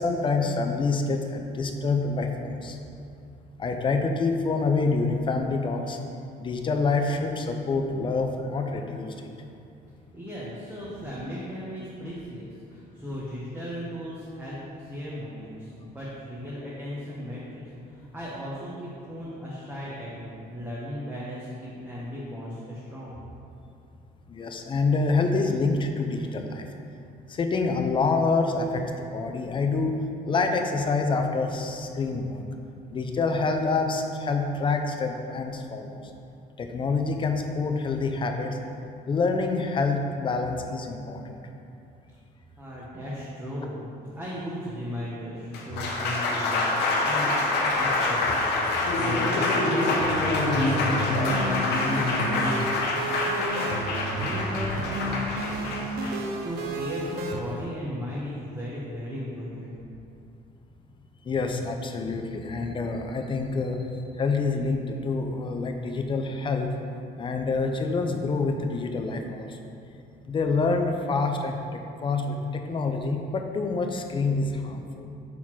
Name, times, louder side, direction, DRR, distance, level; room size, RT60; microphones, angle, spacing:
voice 1, 0.0-2.8 3.6-6.0 6.4-9.3 24.3-26.6 27.3-30.0 30.3-32.4 32.9-36.0 36.6-38.6 39.1-41.4 48.9-49.2 61.2-66.7 67.2-69.7 70.3-75.1, left 3 dB, 30° left, 4 dB, 0.6 m, -27 dB
voice 2, 10.1-17.7 17.9-23.2 42.6-43.8 44.1-48.4 48.9-51.0 51.2-52.8 53.2-54.8 56.4-59.7, equal, 10° right, -8 dB, 1.1 m, -36 dB
Applause, 45.4-57.6, left 2 dB, 80° left, 1.0 m, -26 dB
sound 1, 50.0-57.4, right 2 dB, 70° right, 0.7 m, -32 dB
5.8 x 4.1 x 4.6 m, 2.6 s
cardioid pair, 110°, 17 cm